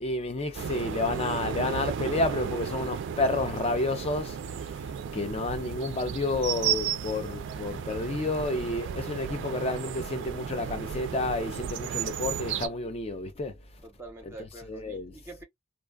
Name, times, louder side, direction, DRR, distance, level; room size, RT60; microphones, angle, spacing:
voice 1, 0.0-4.4 5.1-13.5 14.7-15.2, left 2 dB, 30° left, 0.4 m, -30 dB
sound 1, 0.5-12.7, right 8 dB, 55° right, 0.3 m, -34 dB
voice 2, 13.8-15.4, right 2 dB, 10° right, 0.8 m, -45 dB
2.4 x 2.2 x 2.2 m
head